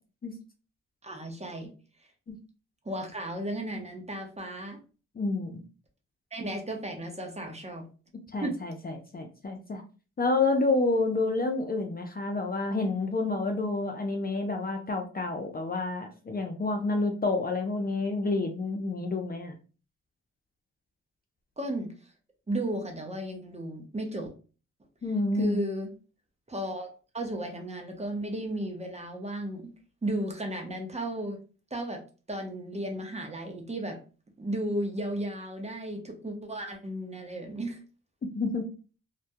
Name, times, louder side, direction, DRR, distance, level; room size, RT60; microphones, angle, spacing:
voice 1, 1.0-1.7 2.8-4.8 6.3-7.9 8.4-8.6 21.6-21.9 22.5-24.3 25.3-25.9 26.5-29.7 30.0-31.4 31.7-32.0 32.3-34.0 34.4-37.8, right 1 dB, 20° right, 3 dB, 0.7 m, -34 dB
voice 2, 5.2-5.6 8.3-9.8 10.2-19.5 25.0-25.6 38.3-38.7, left 3 dB, 30° left, 4 dB, 0.5 m, -29 dB
2.2 x 2.1 x 2.7 m, 0.35 s
cardioid pair, 70°, 31 cm